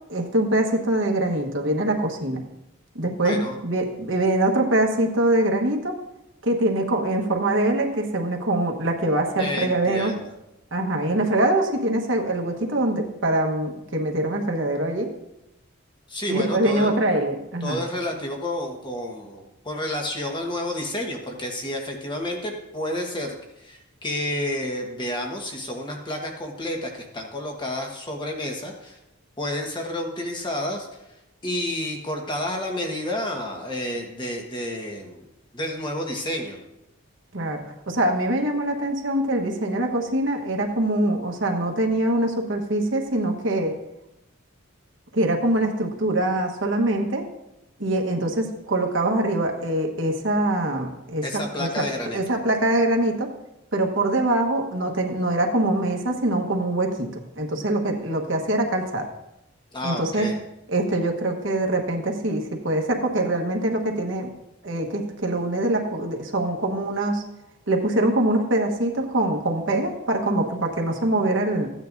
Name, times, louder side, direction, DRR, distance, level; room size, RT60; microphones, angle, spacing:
voice 1, 0.1-2.4 2.9-3.4 3.6-6.0 6.4-10.1 10.7-15.1 16.3-17.8 37.3-43.7 45.1-47.3 47.8-51.2 51.6-51.8 52.1-53.3 53.7-59.1 59.8-60.3 60.7-64.3 64.6-67.2 67.7-71.7, right 1 dB, 65° right, 2 dB, 1.3 m, -23 dB
voice 2, 3.2-3.6 9.4-10.3 16.1-16.9 17.6-29.0 29.4-31.0 31.4-35.2 35.5-36.6 51.2-52.2 59.7-60.3, left 1 dB, 20° left, 1 dB, 1.4 m, -30 dB
15.0 x 9.2 x 2.7 m, 0.90 s
head